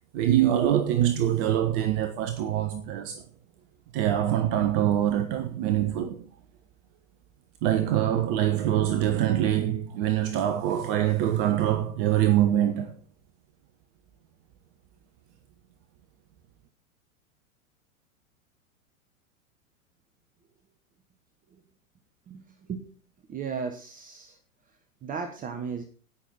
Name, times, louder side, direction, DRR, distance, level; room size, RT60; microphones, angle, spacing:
voice 1, 0.1-3.2 3.9-6.3 7.6-12.9, right 11 dB, 40° right, 1.1 m, -24 dB
voice 2, 22.3-22.8 23.3-24.4 25.0-25.8, right 6 dB, 20° right, 1.1 m, -35 dB
17.5 x 6.3 x 4.2 m
figure-of-eight pair, 100°, 42 cm